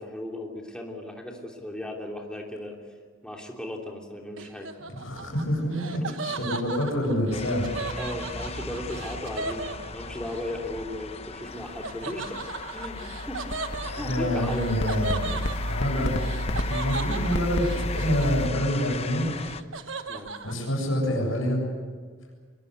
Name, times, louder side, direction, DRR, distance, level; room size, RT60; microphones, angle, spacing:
voice 1, 0.0-3.0 3.2-4.7 8.0-12.4 12.7-14.7 20.1-20.3, left 1 dB, 5° left, 0 dB, 3.1 m, -36 dB
Laughter, 4.4-10.4 11.8-18.8 19.1-20.5, right 4 dB, 65° right, 1.3 m, -37 dB
voice 2, 4.9-8.0 13.8-19.2 20.4-21.6, equal, 85° left, -1 dB, 7.7 m, -27 dB
sound 1, 7.3-19.6, left 4 dB, 30° left, 0.8 m, -38 dB
sound 2, 12.5-18.5, equal, 60° left, 1.1 m, -31 dB
24.0 x 21.5 x 8.2 m, 1.5 s
head